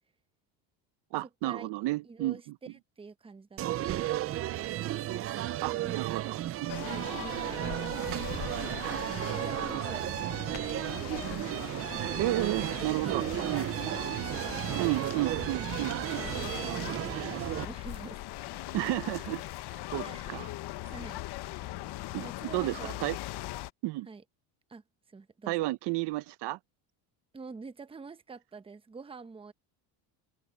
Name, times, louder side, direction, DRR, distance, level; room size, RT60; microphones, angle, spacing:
voice 1, 1.1-2.5 5.6-6.7 12.2-13.7 14.8-16.2 18.7-19.4 19.7-20.5 20.8-20.9 22.1-22.3 22.5-23.2 23.8-24.1 25.5-26.6, right 18 dB, 60° right, 0.8 m, -32 dB
voice 2, 2.0-2.4 2.7-3.6 5.6-6.3 6.8-8.2 8.9-10.8 11.9-12.2 12.6-14.1 14.4-15.1 16.1-18.2 20.0-20.3 20.9-21.2 22.2-23.0 24.1-24.2 24.7-24.8 25.1-25.5 27.3-29.5, right 4 dB, 10° right, 0.8 m, -47 dB
sound 1, 3.6-17.7, right 14 dB, 35° right, 0.4 m, -34 dB
sound 2, 6.7-23.7, left 16 dB, 55° left, 1.1 m, -40 dB
Midway Island Gooney Birds, 8.4-14.1, left 28 dB, 90° left, 6.1 m, -65 dB
cardioid pair, 125°, 47 cm